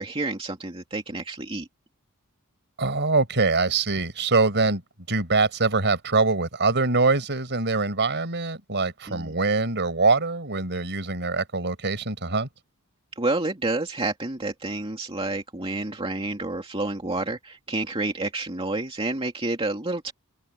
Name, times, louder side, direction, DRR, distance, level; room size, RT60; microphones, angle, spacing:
voice 1, 0.0-1.7 9.1-9.3 13.2-20.1, right 2 dB, 25° right, 2.4 m, -29 dB
voice 2, 2.8-4.8 5.1-12.5, right 3 dB, 55° right, 5.2 m, -23 dB
head